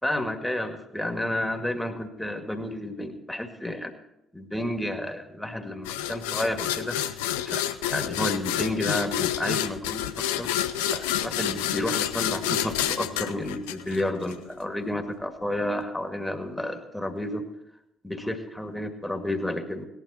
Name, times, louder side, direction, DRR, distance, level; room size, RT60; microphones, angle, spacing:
voice 1, 0.0-3.9 4.3-7.0 7.5-7.6 7.9-10.6 10.9-17.5 18.0-19.9, left 1 dB, 5° left, 6 dB, 2.1 m, -31 dB
sound 1, 5.9-14.4, left 11 dB, 80° left, 0.5 m, -29 dB
17.5 x 11.5 x 4.3 m, 0.87 s
hypercardioid pair, 45°, 0 cm